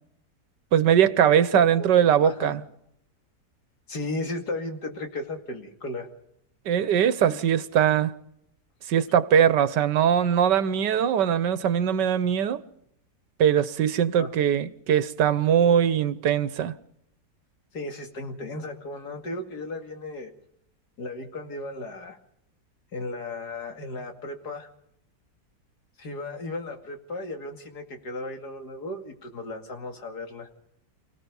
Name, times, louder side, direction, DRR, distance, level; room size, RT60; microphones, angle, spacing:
voice 1, 0.7-2.6 6.6-8.1 8.9-12.6 13.4-16.7, right 9 dB, 90° right, 1.6 m, -21 dB
voice 2, 1.3-1.9 2.2-2.5 3.9-6.1 7.3-7.4 14.2-14.3 17.7-20.3 21.0-22.2 22.9-24.7 26.0-30.5, left 2 dB, 70° left, 2.9 m, -35 dB
29.0 x 17.0 x 5.5 m
omnidirectional pair, 1.8 m